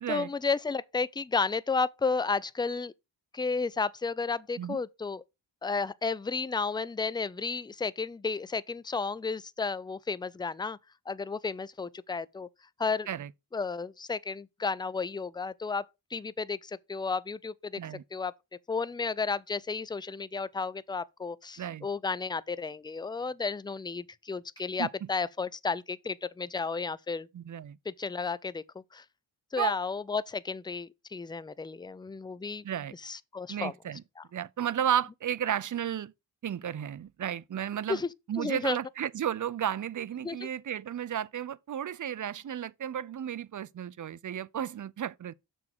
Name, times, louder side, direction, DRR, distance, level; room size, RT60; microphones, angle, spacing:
voice 1, 0.1-2.9 3.3-5.2 5.6-10.8 11.1-12.5 12.8-13.1 13.5-15.8 16.1-17.8 18.1-18.3 18.7-27.3 27.9-28.6 28.9-29.0 29.5-32.6 33.0-33.7 34.2-34.3 37.9-38.1 38.4-38.8 40.2-40.5, left 4 dB, 10° left, 0.4 m, -32 dB
voice 2, 24.8-25.1 27.3-27.8 29.6-29.8 32.6-32.9 33.5-34.0 34.3-36.1 36.4-38.0 38.3-45.3, right 10 dB, 40° right, 0.5 m, -33 dB
6.9 x 3.6 x 6.0 m
cardioid pair, 55°, 46 cm